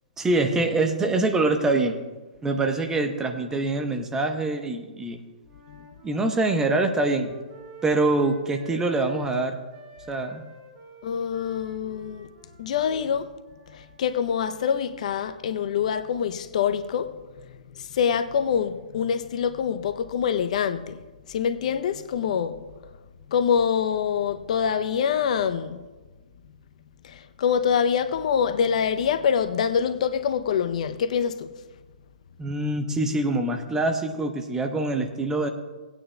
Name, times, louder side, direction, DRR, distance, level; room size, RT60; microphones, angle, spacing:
voice 1, 0.2-2.0 2.4-5.2 6.0-7.3 7.8-9.6 10.1-10.4 32.4-35.5, right 2 dB, 10° right, 0.9 m, -24 dB
Wind instrument woodwind instrument, 5.4-9.3 9.7-14.1, right 2 dB, 40° right, 2.4 m, -48 dB
voice 2, 11.0-12.3 12.6-13.3 13.7-17.1 17.4-21.0 21.3-22.6 23.3-25.8 27.0-31.5, left 7 dB, 60° left, 0.6 m, -25 dB
18.5 x 9.0 x 2.2 m
hypercardioid pair, 125°, 4 cm